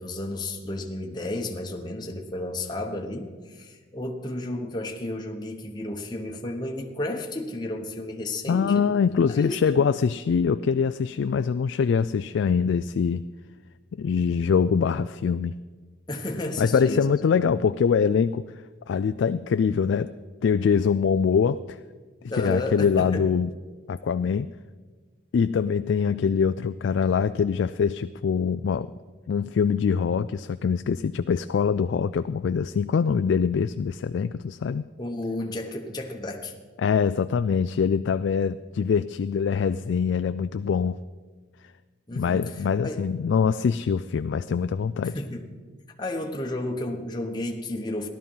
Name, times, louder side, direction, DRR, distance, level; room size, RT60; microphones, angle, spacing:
voice 1, 0.0-8.9 9.3-9.8 16.1-17.1 17.3-17.4 22.3-23.3 35.0-36.5 42.1-43.0 45.0-45.5 46.0-48.1, left 1 dB, 20° left, 1 dB, 1.0 m, -32 dB
voice 2, 8.5-13.2 13.9-15.5 16.6-18.4 18.9-20.1 20.4-21.8 22.4-23.5 23.9-24.5 25.3-28.9 29.3-34.8 36.8-41.0 42.1-45.2, left 6 dB, 65° left, 11 dB, 0.3 m, -24 dB
16.0 x 12.0 x 5.5 m, 1.4 s
head